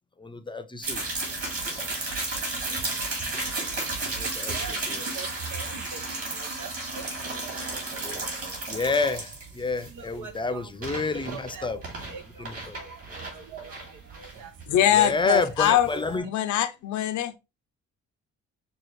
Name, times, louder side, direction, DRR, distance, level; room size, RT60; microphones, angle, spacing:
voice 1, 0.2-1.0 4.0-5.0 8.0-8.3 8.7-11.8 12.4-12.8 14.9-16.3, left 3 dB, 15° left, 0.6 m, -29 dB
sound 1, 0.8-16.2, right 3 dB, 50° right, 3.0 m, -33 dB
voice 2, 4.5-7.5 9.9-11.0 11.3-11.7 12.0-14.9 17.2-17.3, right 6 dB, 80° right, 0.9 m, -44 dB
voice 3, 14.7-15.9 16.2-17.4, left 11 dB, 70° left, 0.6 m, -22 dB
6.2 x 2.4 x 3.0 m
cardioid pair, 90°, 30 cm